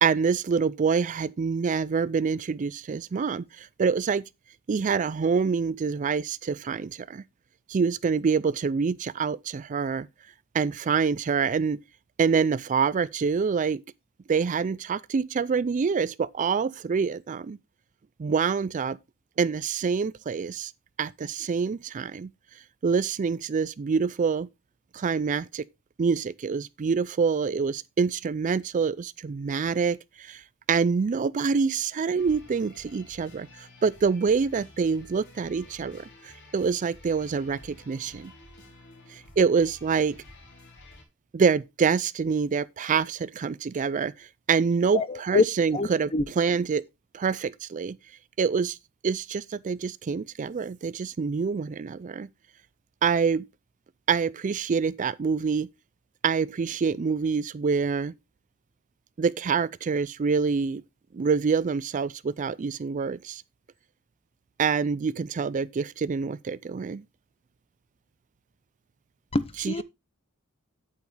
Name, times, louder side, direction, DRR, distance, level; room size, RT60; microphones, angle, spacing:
voice 1, 0.0-4.2 4.7-7.2 7.7-10.1 10.5-11.8 12.2-13.8 14.3-17.6 18.2-19.0 19.4-20.7 21.0-22.3 22.8-24.5 24.9-25.6 26.0-30.4 30.7-38.3 39.1-40.2 41.3-46.1 46.4-46.8 47.1-48.0 48.4-48.8 49.0-52.3 53.0-53.4 54.1-55.7 56.2-58.1 59.2-60.8 61.1-63.4 64.6-67.0 69.6-69.8, right 5 dB, 35° right, 0.4 m, -26 dB
sound 1, 32.2-41.0, left 2 dB, 55° left, 3.6 m, -51 dB
voice 2, 44.9-45.4 45.7-46.2 69.3-69.8, left 3 dB, 25° left, 0.7 m, -25 dB
8.5 x 8.2 x 3.3 m
head